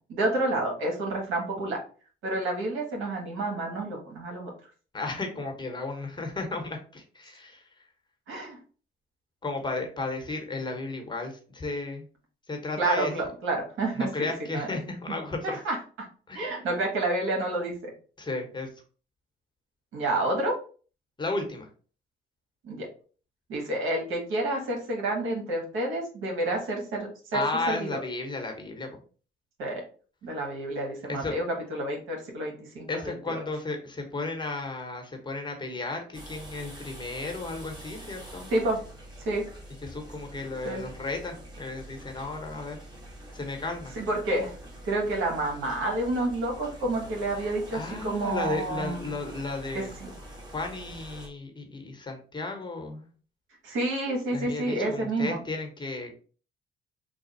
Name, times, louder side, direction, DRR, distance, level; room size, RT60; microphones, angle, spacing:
voice 1, 0.1-1.8 2.2-4.5 8.3-8.6 12.8-14.8 15.4-16.1 16.3-17.9 19.9-20.5 22.6-22.9 23.5-28.0 29.6-29.8 30.2-33.4 38.5-38.8 39.2-39.4 40.6-40.8 43.9-44.5 44.8-49.1 49.7-50.1 53.6-55.4, right 2 dB, 90° right, 1 dB, 1.2 m, -29 dB
voice 2, 4.9-7.6 9.4-12.0 12.5-13.1 14.0-15.6 16.3-16.5 18.2-18.7 21.2-21.7 27.3-29.0 31.1-31.3 32.9-38.5 39.8-42.8 43.3-44.0 47.4-49.9 50.5-53.1 54.3-56.1, left 3 dB, 20° left, 3 dB, 1.1 m, -34 dB
sound 1, 36.1-51.3, right 1 dB, 20° right, 1.3 m, -45 dB
3.4 x 2.3 x 4.0 m, 0.40 s
cardioid pair, 90°, 20 cm